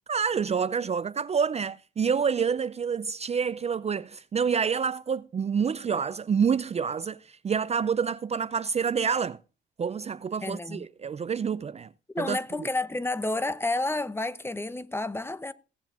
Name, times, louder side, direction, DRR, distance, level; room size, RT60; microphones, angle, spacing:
voice 1, 0.1-9.4 9.8-11.9 12.2-12.7, right 6 dB, 35° right, 0.5 m, -28 dB
voice 2, 10.4-10.9 12.1-15.5, left 2 dB, 10° left, 0.8 m, -30 dB
16.5 x 7.4 x 3.6 m
cardioid pair, 90°, 20 cm